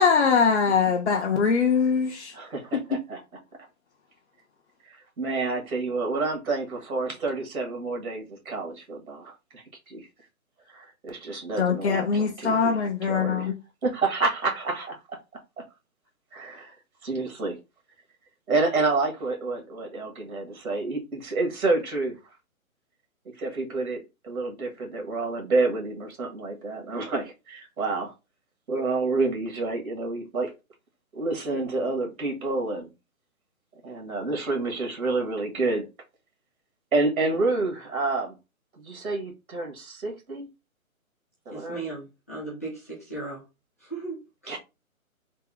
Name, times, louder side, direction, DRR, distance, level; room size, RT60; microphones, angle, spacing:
voice 1, 0.0-2.3 11.6-13.5, left 5 dB, 50° left, 0.6 m, -22 dB
voice 2, 2.3-3.2 4.8-10.1 10.7-13.5 13.8-15.2 15.6-15.7 16.3-16.7 17.0-17.6 18.5-22.2 23.4-28.1 28.7-30.5 31.1-32.9 33.8-35.9 36.9-38.3 38.8-40.5 41.4-41.8 44.5-44.6, right 3 dB, 80° right, 1.5 m, -29 dB
voice 3, 41.5-43.4 43.8-44.6, right 3 dB, 10° left, 0.5 m, -37 dB
3.5 x 2.1 x 3.3 m
hypercardioid pair, 160°, 43 cm